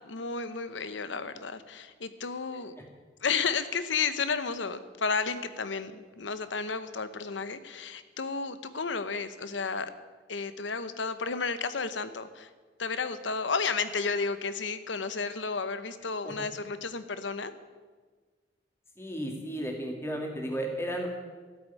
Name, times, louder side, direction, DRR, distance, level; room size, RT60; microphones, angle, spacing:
voice 1, 0.0-2.7 3.2-9.9 10.3-12.5 12.8-17.5, left 5 dB, 85° left, 12 dB, 0.9 m, -32 dB
voice 2, 19.0-21.1, right 1 dB, 15° left, 1 dB, 2.2 m, -34 dB
13.5 x 8.1 x 9.7 m, 1.4 s
head